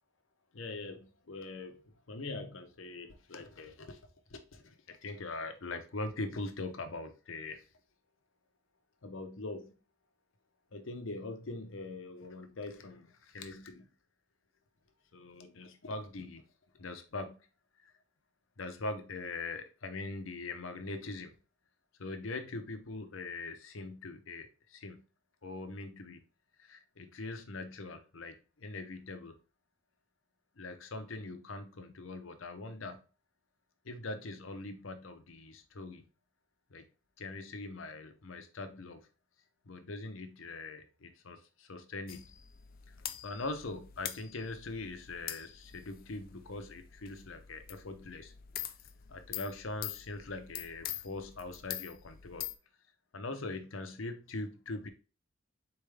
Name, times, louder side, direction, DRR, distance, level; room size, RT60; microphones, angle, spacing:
voice 1, 0.5-4.0 4.3-7.6 9.0-9.7 10.7-13.9 15.1-16.4 16.8-17.4 17.8-17.9 18.6-21.4 22.0-25.0 25.4-26.2 26.6-29.4 30.6-33.0 33.8-36.1 36.7-36.8 37.2-39.0 39.6-42.3 42.9-43.0 43.2-48.3 49.1-52.5 53.1-54.9, left 2 dB, 70° left, 0.8 m, -42 dB
sound 1, 42.1-52.5, left 12 dB, 45° left, 0.4 m, -45 dB
4.3 x 3.5 x 3.3 m
head